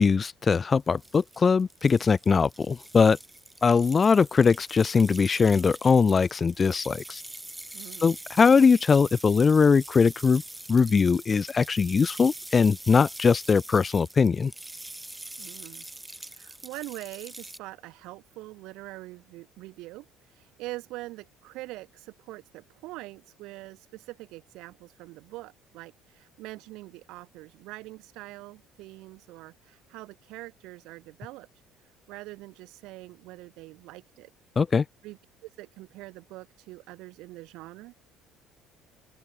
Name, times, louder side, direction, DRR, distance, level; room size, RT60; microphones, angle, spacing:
voice 1, 0.0-3.2 3.6-7.2 8.0-10.4 10.7-14.5 34.6-34.8, left 5 dB, 30° left, 0.3 m, -21 dB
sound 1, 0.8-17.6, right 1 dB, 10° right, 6.1 m, -44 dB
voice 2, 7.7-8.1 15.4-15.9 16.2-31.5 31.8-34.3 35.0-37.9, right 20 dB, 75° right, 3.6 m, -44 dB
open air
supercardioid pair, 95°, 0 cm